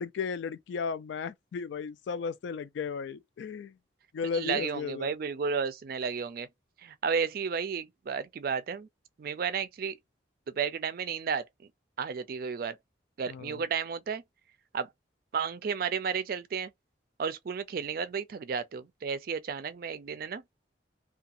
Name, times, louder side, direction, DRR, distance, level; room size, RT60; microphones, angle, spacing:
voice 1, 0.0-3.7 4.1-5.1 13.3-13.6, left 5 dB, 75° left, 0.3 m, -35 dB
voice 2, 4.3-6.5 6.8-8.9 9.2-10.0 10.5-11.4 12.0-12.8 13.2-14.2 14.7-14.9 15.3-16.7 17.2-20.4, right 6 dB, 50° right, 0.3 m, -32 dB
2.4 x 2.2 x 2.6 m
head